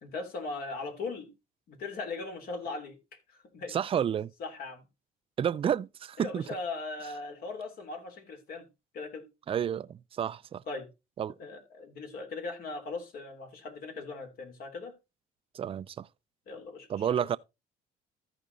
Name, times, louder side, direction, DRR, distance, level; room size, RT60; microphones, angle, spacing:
voice 1, 0.0-1.3 1.7-3.0 3.3-3.8 4.4-4.9 6.2-8.7 8.9-9.2 10.7-10.9 11.4-14.9 16.5-17.4, left 3 dB, 65° left, 3.2 m, -39 dB
voice 2, 3.7-4.3 5.4-6.4 9.5-10.6 11.2-11.3 15.5-16.1 16.9-17.4, right 9 dB, 35° right, 0.4 m, -30 dB
14.0 x 5.1 x 3.9 m
cardioid pair, 110°, 17 cm